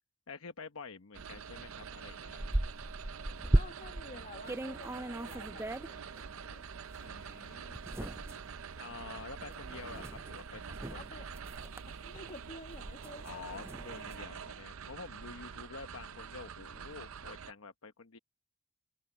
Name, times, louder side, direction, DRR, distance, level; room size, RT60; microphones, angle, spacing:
voice 1, 0.3-2.4 7.0-8.1 8.7-11.1 13.2-18.2, left 4 dB, 70° left, 1.0 m, -48 dB
sound 1, 1.1-17.5, right 6 dB, 65° right, 0.6 m, -46 dB
sound 2, 1.4-1.5 1.9-4.1 4.5-6.3 6.9-7.0 7.7-14.2, right 1 dB, 10° right, 0.4 m, -36 dB
voice 2, 3.5-6.7 9.4-9.6 10.9-11.3 11.9-13.9, left 2 dB, 35° left, 1.8 m, -51 dB
head